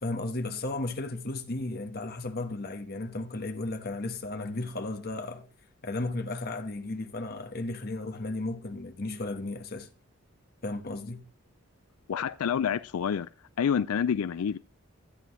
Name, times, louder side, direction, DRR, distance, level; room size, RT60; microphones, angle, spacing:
voice 1, 0.0-5.5 5.8-9.9 10.6-11.2, left 2 dB, 45° left, 1.2 m, -34 dB
voice 2, 12.1-13.3 13.6-14.6, left 7 dB, 90° left, 0.4 m, -28 dB
13.0 x 9.2 x 3.1 m
head